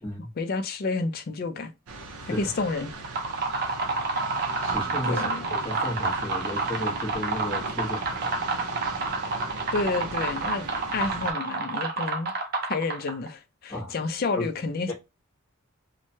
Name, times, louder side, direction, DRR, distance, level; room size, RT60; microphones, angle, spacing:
voice 1, 0.4-1.7 2.4-2.9 5.1-5.5 9.7-12.3 12.7-14.9, left 3 dB, 45° left, 0.4 m, -30 dB
sound 1, 1.9-11.3, right 3 dB, 90° right, 0.6 m, -39 dB
voice 2, 2.2-2.5 3.6-3.7 4.6-8.3 13.7-13.9 14.3-14.4 14.9-15.0, left 1 dB, 10° left, 1.0 m, -34 dB
sound 2, 2.9-13.3, right 3 dB, 45° right, 0.5 m, -29 dB
3.1 x 2.1 x 2.7 m
head